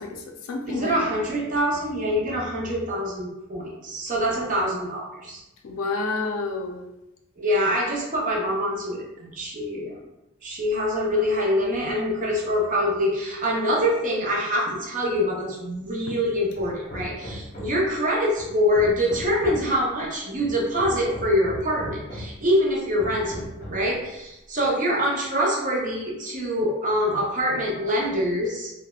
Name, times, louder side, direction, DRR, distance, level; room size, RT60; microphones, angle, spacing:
voice 1, 0.0-0.9 5.6-6.8, left 3 dB, 85° left, 2 dB, 0.4 m, -29 dB
voice 2, 0.7-5.4 7.4-10.0 10.4-23.4 23.7-28.7, equal, 35° right, -3 dB, 0.6 m, -25 dB
Hammer, 16.5-17.9 18.4-19.8 20.4-22.4 23.0-23.9, equal, 35° left, 0.7 m, -37 dB
3.2 x 2.0 x 2.3 m, 0.92 s
head